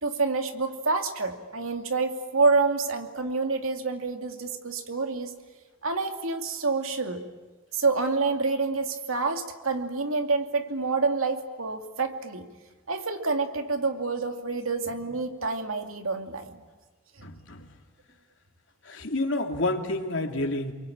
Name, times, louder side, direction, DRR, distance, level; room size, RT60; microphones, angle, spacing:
voice 1, 0.0-5.3 5.8-7.2 7.7-12.5 12.9-16.6, right 4 dB, 85° right, 5 dB, 2.5 m, -27 dB
voice 2, 17.2-17.7 18.8-20.7, left 2 dB, 65° left, 4 dB, 2.7 m, -29 dB
28.5 x 23.5 x 8.7 m, 1.3 s
head